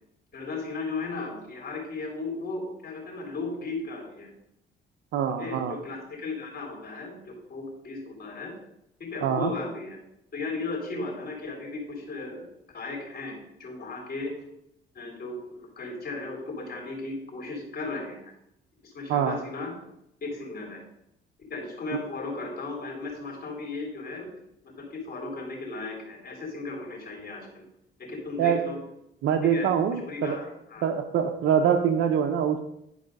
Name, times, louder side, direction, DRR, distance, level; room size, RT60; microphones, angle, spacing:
voice 1, 0.3-4.3 5.3-8.5 9.0-10.0 10.3-12.4 12.7-14.3 14.9-18.3 18.8-19.7 20.2-20.8 21.5-24.3 24.6-27.6 28.0-28.8 29.4-30.9, left 3 dB, 50° left, 0 dB, 3.8 m, -36 dB
voice 2, 5.1-5.8 9.2-9.5 19.1-19.4 28.4-28.6 29.2-30.4 30.8-32.6, right 8 dB, 80° right, 4 dB, 0.8 m, -24 dB
11.0 x 4.9 x 5.3 m, 0.79 s
cardioid pair, 90°, 20 cm